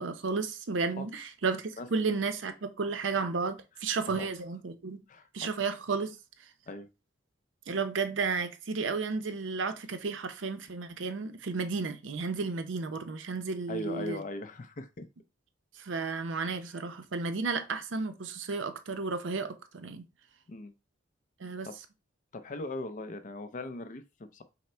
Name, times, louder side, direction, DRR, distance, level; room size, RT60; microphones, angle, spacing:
voice 1, 0.0-5.0 5.3-6.2 7.7-14.2 15.8-20.1 21.4-21.7, right 4 dB, 70° right, 0.6 m, -33 dB
voice 2, 5.1-5.5 6.7-6.9 13.7-15.1 20.5-20.7 21.6-21.7 22.3-24.4, left 2 dB, 45° left, 0.5 m, -39 dB
5.7 x 2.1 x 4.3 m
head